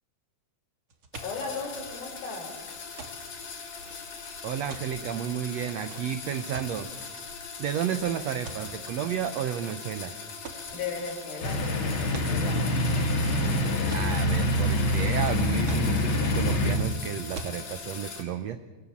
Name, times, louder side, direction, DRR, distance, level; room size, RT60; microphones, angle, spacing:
sound 1, 0.9-7.0 7.7-8.0 8.4-9.1 9.6-10.0 10.4-10.8 11.4-11.6 11.9-12.4 13.2-14.1 14.6-15.3 15.7-16.1 16.7-16.8 17.3-17.5, right 3 dB, 40° right, 2.2 m, -43 dB
sound 2, 1.1-18.2, left 5 dB, 60° left, 4.4 m, -40 dB
voice 1, 1.2-2.6 10.7-12.6, left 4 dB, 80° left, 3 dB, 6.0 m, -36 dB
voice 2, 4.4-6.9 7.6-10.1 13.9-18.6, right 9 dB, 80° right, 10 dB, 1.5 m, -32 dB
sound 3, 11.4-16.7, left 1 dB, 35° left, 2.7 m, -25 dB
23.5 x 21.0 x 7.3 m, 1.3 s
omnidirectional pair, 4.3 m